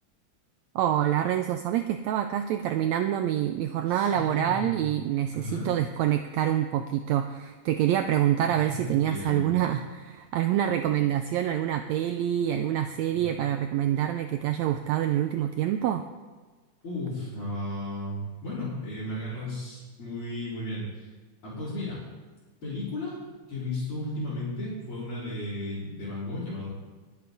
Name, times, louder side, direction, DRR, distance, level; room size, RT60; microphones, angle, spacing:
voice 1, 0.7-16.0, right 11 dB, 85° right, 7 dB, 1.6 m, -26 dB
voice 2, 3.9-4.9 5.3-5.7 8.5-9.5 13.1-13.3 13.8-14.0 16.8-21.1 21.4-22.0 22.6-23.2 23.5-26.7, left 1 dB, 40° left, -12 dB, 4.8 m, -34 dB
21.0 x 8.7 x 4.0 m, 1.3 s
omnidirectional pair, 3.7 m